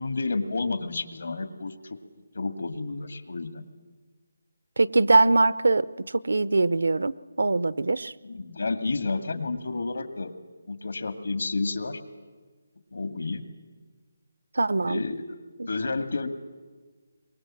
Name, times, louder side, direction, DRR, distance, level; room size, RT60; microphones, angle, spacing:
voice 1, 0.0-2.0 2.3-3.6 8.2-10.3 10.7-12.0 12.9-13.4 14.8-15.4 15.7-16.3, left 3 dB, 75° left, 9 dB, 2.0 m, -30 dB
voice 2, 4.8-8.1 14.5-15.0 15.6-15.7, right 3 dB, 85° right, 18 dB, 0.7 m, -22 dB
23.5 x 20.5 x 7.6 m, 1.4 s
hypercardioid pair, 170°, 0 cm